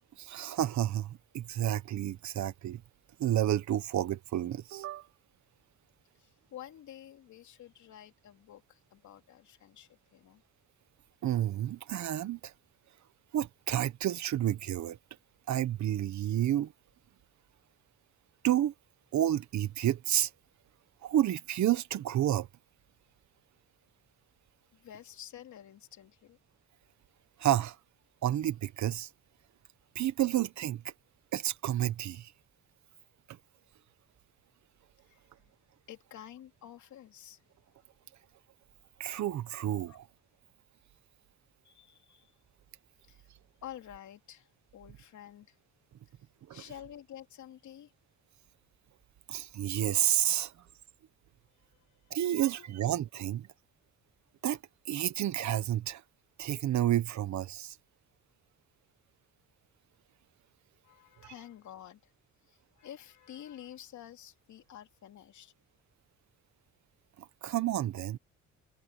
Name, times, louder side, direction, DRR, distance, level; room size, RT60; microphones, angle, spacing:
voice 1, 0.2-2.8 3.2-5.1 11.2-12.5 13.3-15.0 15.5-16.7 18.4-18.7 19.1-20.3 21.0-22.5 27.4-27.8 28.2-29.1 29.9-30.8 31.3-32.3 33.3-33.4 39.0-40.1 46.5-46.6 49.3-50.5 52.1-53.5 54.4-54.6 54.9-56.0 56.4-57.8 61.2-61.3 67.2-68.2, right 12 dB, 70° right, 1.3 m, -30 dB
voice 2, 6.2-10.4 24.7-26.4 35.1-35.5 35.9-37.4 39.9-40.0 41.6-42.3 43.0-43.3 43.6-45.6 46.5-47.9 51.6-52.2 52.6-52.7 60.8-62.0 62.5-65.5, left 11 dB, 70° left, 2.9 m, -50 dB
cardioid pair, 90°, 30 cm